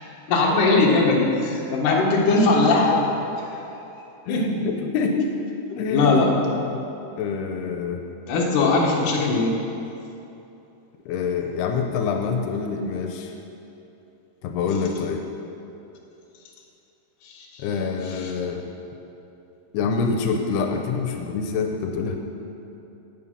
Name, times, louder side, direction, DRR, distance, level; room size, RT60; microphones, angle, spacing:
voice 1, 0.3-3.1 3.4-4.6 5.9-6.3 8.3-9.5 17.2-17.7 18.0-18.3, left 3 dB, 60° left, -2 dB, 3.0 m, -21 dB
voice 2, 4.3-5.3 5.7-6.3 6.9-8.0 11.1-13.3 14.4-15.2 17.6-18.7 19.7-22.2, left 5 dB, 90° left, 4 dB, 2.8 m, -26 dB
15.5 x 9.5 x 5.6 m, 2.9 s
omnidirectional pair, 4.6 m